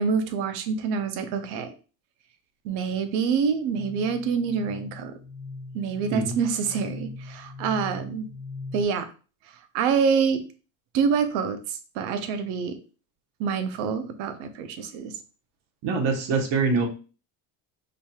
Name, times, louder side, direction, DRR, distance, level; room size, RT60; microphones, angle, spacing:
voice 1, 0.0-1.7 2.6-5.2 5.7-8.3 8.7-9.1 9.7-10.4 10.9-12.8 13.4-15.1, right 6 dB, 85° right, 9 dB, 0.8 m, -26 dB
sound 1, 3.7-8.8, left 3 dB, 15° left, 0.9 m, -40 dB
voice 2, 15.8-16.9, right 4 dB, 65° right, 2 dB, 1.3 m, -24 dB
5.0 x 2.9 x 2.3 m, 0.35 s
supercardioid pair, 105°, 45 cm